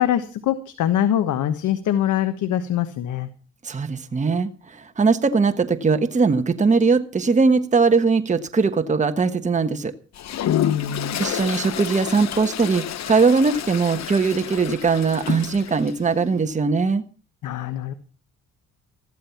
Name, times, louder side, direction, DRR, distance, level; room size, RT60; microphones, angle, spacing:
voice 1, 0.0-3.3 10.5-11.2 17.4-17.9, left 11 dB, 80° left, 10 dB, 1.4 m, -23 dB
voice 2, 3.6-9.9 11.2-17.0, right 4 dB, 25° right, 7 dB, 1.3 m, -20 dB
Toilet flush, 10.1-16.0, left 10 dB, 60° left, 1.1 m, -30 dB
14.5 x 12.5 x 5.8 m, 0.37 s
cardioid pair, 90°, 30 cm